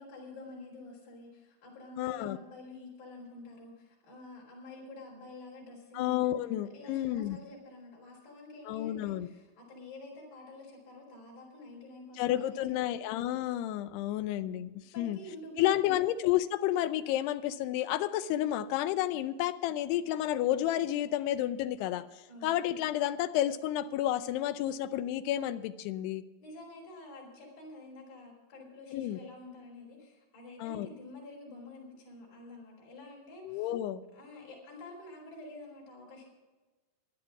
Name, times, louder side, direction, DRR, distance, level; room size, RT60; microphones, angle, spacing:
voice 1, 0.0-6.5 6.7-13.0 14.9-16.1 22.3-22.6 26.4-33.7 34.1-36.2, left 2 dB, 60° left, -3 dB, 5.3 m, -49 dB
voice 2, 2.0-2.4 5.9-7.4 8.7-9.3 12.2-15.2 15.6-22.1 22.4-26.2 28.9-29.2 30.6-30.9 33.4-34.0, left 13 dB, 90° left, 13 dB, 2.7 m, -31 dB
13.5 x 11.0 x 5.9 m, 1.2 s
omnidirectional pair, 4.7 m